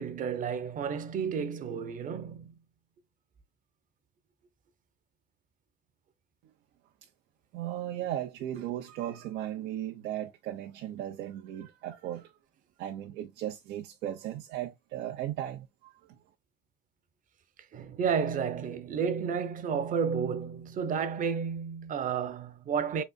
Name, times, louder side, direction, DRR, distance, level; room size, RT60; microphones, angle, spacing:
voice 1, 0.0-2.5 17.7-23.0, right 6 dB, 50° right, 0.9 m, -31 dB
voice 2, 7.5-12.3 12.8-15.9, right 12 dB, 85° right, 0.9 m, -36 dB
5.4 x 4.2 x 2.2 m
cardioid pair, 110°, 17 cm